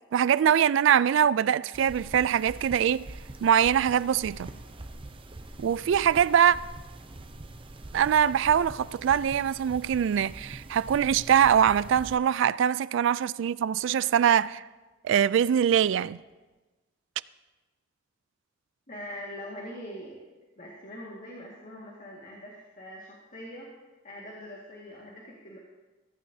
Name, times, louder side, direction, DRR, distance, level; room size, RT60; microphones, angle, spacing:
voice 1, 0.1-3.1 3.4-4.5 5.6-6.6 7.9-14.6 15.0-16.2, right 9 dB, 65° right, 0.3 m, -23 dB
sound 1, 1.7-12.2, right 2 dB, 25° right, 0.6 m, -44 dB
voice 2, 18.9-20.2 20.6-23.7 24.0-25.6, equal, 40° left, 1.9 m, -42 dB
15.5 x 15.0 x 2.7 m
head